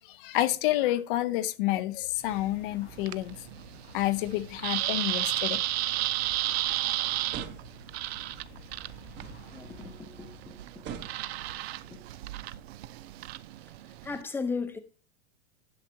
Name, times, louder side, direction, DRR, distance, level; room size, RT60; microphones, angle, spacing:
voice 1, 0.0-3.4 3.9-5.6, left 15 dB, 50° left, 0.8 m, -29 dB
sound 1, 2.1-10.4, left 5 dB, 75° left, 2.2 m, -53 dB
sound 2, 2.2-14.2, right 15 dB, 65° right, 0.6 m, -34 dB
voice 2, 6.0-6.3 9.5-10.9 11.9-12.0 14.0-14.8, left 4 dB, 5° left, 0.8 m, -37 dB
sound 3, 6.2-12.0, right 7 dB, 30° right, 1.2 m, -47 dB
11.0 x 6.4 x 2.8 m
supercardioid pair, 140°, 33 cm